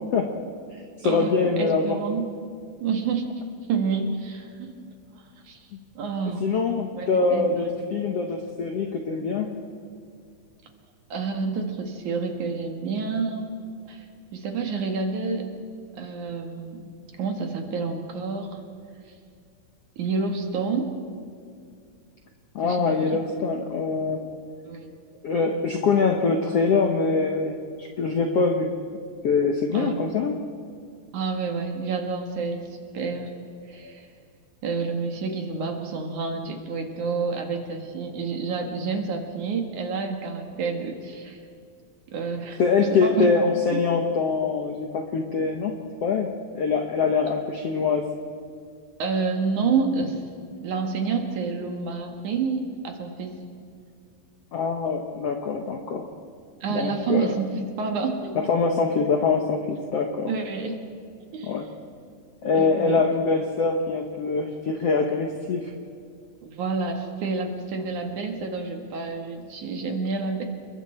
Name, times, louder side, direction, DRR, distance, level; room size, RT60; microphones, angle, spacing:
voice 1, 1.0-2.0 5.7-5.8 6.4-9.5 22.5-24.3 25.2-28.7 29.2-30.4 42.6-48.1 54.5-56.1 56.7-57.3 58.3-60.3 61.4-61.7 62.4-65.7, left 4 dB, 65° left, 3 dB, 1.5 m, -24 dB
voice 2, 1.6-2.3 2.8-3.3 3.7-4.9 5.4-5.6 5.9-6.5 6.9-7.7 11.1-13.5 13.9-14.1 14.3-15.5 15.9-16.9 17.2-18.6 20.0-20.9 22.6-23.0 24.7-24.9 29.7-30.0 31.1-32.7 32.9-33.3 33.7-34.1 34.6-41.4 42.1-42.6 42.9-43.3 43.7-43.8 49.0-50.2 50.6-53.4 56.6-58.3 60.3-60.8 61.3-61.5 62.5-63.0 66.4-70.4, right 4 dB, 60° right, 3 dB, 2.9 m, -29 dB
29.5 x 22.0 x 4.4 m, 2.3 s
omnidirectional pair, 4.3 m